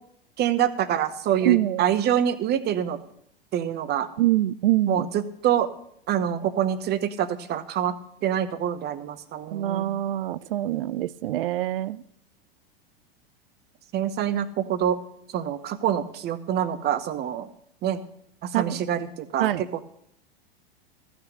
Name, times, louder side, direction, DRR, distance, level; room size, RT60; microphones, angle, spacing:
voice 1, 0.4-3.0 3.5-4.1 4.9-5.7 6.1-7.9 8.2-9.9 13.9-15.0 15.3-17.5 17.8-18.0 18.4-19.8, right 10 dB, 35° right, 13 dB, 0.9 m, -26 dB
voice 2, 1.5-1.9 4.2-5.0 9.5-12.0 18.5-18.8 19.4-19.6, right 14 dB, 65° right, 19 dB, 0.5 m, -24 dB
14.0 x 6.1 x 6.7 m, 0.73 s
hypercardioid pair, 90°, 30 cm